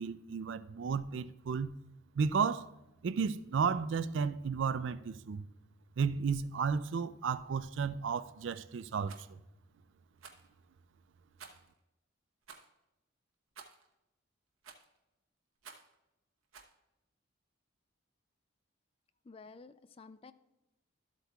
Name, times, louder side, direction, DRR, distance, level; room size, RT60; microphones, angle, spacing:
voice 1, 0.0-1.7 2.2-2.7 3.0-5.5 6.0-9.4, right 5 dB, 60° right, 0.4 m, -33 dB
Rattle, 9.0-9.3 10.2-10.5 11.4-11.7 12.4-12.7 13.6-13.9 14.6-15.0 15.6-15.9 16.5-16.7, right 5 dB, 80° right, 1.0 m, -52 dB
voice 2, 19.2-20.3, left 4 dB, 30° left, 0.3 m, -52 dB
13.0 x 8.0 x 2.3 m
head